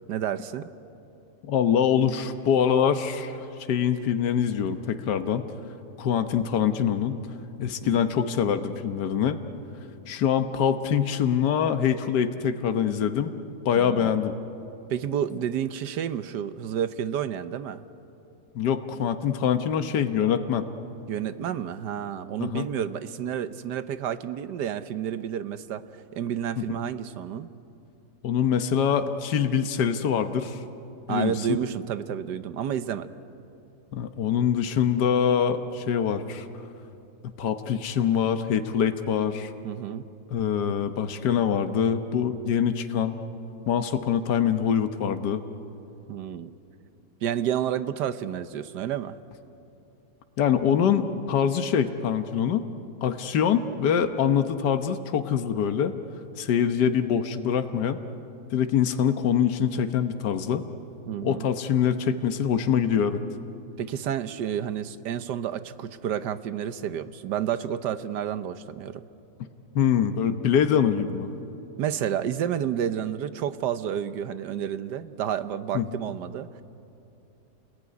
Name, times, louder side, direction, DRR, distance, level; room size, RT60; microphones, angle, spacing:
voice 1, 0.1-0.7 7.8-8.1 13.7-14.1 14.9-17.8 21.1-25.8 26.1-27.5 31.1-33.1 39.6-40.1 46.1-46.5 47.2-49.2 61.1-61.5 63.8-69.0 71.8-76.6, right 9 dB, 80° right, 12 dB, 1.5 m, -30 dB
voice 2, 1.5-3.4 3.7-5.5 6.0-7.2 7.6-9.4 10.1-13.3 13.6-14.3 18.5-20.6 22.4-22.7 26.6-26.7 28.2-30.6 31.1-31.6 33.9-36.4 37.4-39.5 40.3-43.2 43.7-45.4 50.4-52.7 53.0-55.9 56.4-58.0 58.5-60.6 61.2-63.2 69.7-71.3 75.7-75.9, left 8 dB, 75° left, 8 dB, 1.6 m, -24 dB
29.0 x 20.5 x 9.6 m, 2.8 s
omnidirectional pair, 1.8 m